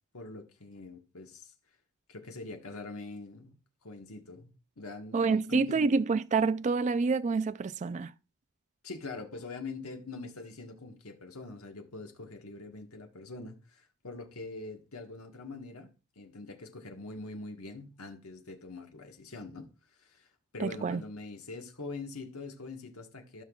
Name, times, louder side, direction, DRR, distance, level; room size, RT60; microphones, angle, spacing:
voice 1, 0.1-1.5 2.1-3.5 3.8-5.8 8.8-19.7 20.0-20.3 20.5-23.4, left 3 dB, 70° left, 1.4 m, -44 dB
voice 2, 5.1-8.1 20.6-21.0, right 4 dB, 30° right, 0.3 m, -27 dB
15.5 x 5.8 x 2.4 m
head